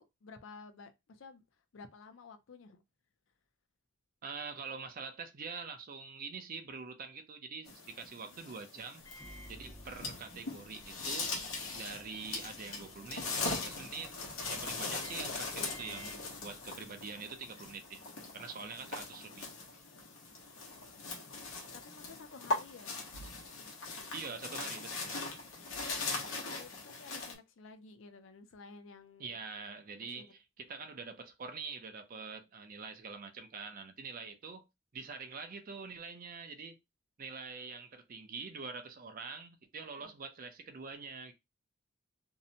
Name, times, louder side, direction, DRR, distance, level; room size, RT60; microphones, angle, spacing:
voice 1, 0.0-1.4 1.7-2.8 21.3-23.0 25.7-29.4 30.1-30.3 40.0-40.1, left 4 dB, 70° left, 0.5 m, -53 dB
voice 2, 4.2-9.0 9.5-11.4 11.7-14.2 14.5-18.1 18.3-19.5 24.1-25.2 29.2-34.7 34.9-36.8 37.2-41.3, right 5 dB, 45° right, 0.4 m, -45 dB
sound 1, 7.7-27.3, left 3 dB, 90° left, 0.9 m, -41 dB
Microwave oven, 9.0-17.2, left 1 dB, 15° left, 0.5 m, -55 dB
2.7 x 2.1 x 2.7 m
head